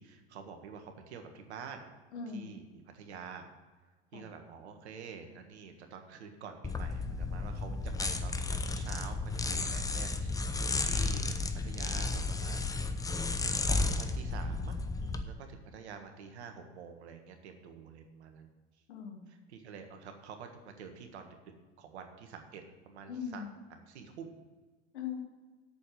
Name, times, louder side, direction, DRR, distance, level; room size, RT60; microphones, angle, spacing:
voice 1, 0.0-1.9 2.3-2.6 2.9-3.4 4.1-11.3 11.6-12.8 13.7-18.5 19.3-21.5 21.8-23.4 23.7-24.3, right 6 dB, 70° right, 6 dB, 1.6 m, -48 dB
voice 2, 2.1-2.5 4.1-4.3 18.9-19.2 23.1-23.5 24.9-25.2, left 7 dB, 75° left, 1 dB, 2.2 m, -40 dB
sound 1, 6.6-15.2, left 3 dB, 10° left, 0.7 m, -33 dB
8.4 x 6.8 x 7.8 m, 1.3 s
hypercardioid pair, 85°, 34 cm